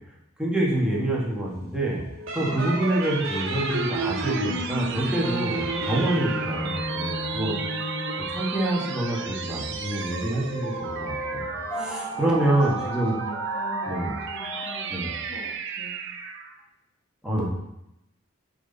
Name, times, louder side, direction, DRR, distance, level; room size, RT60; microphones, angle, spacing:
voice 1, 0.4-2.0 2.3-7.6 8.2-13.2 13.9-14.1 14.9-15.1 17.2-17.5, right 1 dB, 5° right, -5 dB, 1.5 m, -26 dB
sound 1, 1.9-16.6, right 6 dB, 60° right, 0.6 m, -35 dB
sound 2, 2.3-8.3, right 1 dB, 80° right, 1.3 m, -32 dB
voice 2, 2.4-2.8 11.8-16.0, equal, 55° left, 0 dB, 1.2 m, -42 dB
sound 3, 4.7-15.3, right 1 dB, 10° left, 0.7 m, -36 dB
9.0 x 4.2 x 4.0 m, 0.84 s
head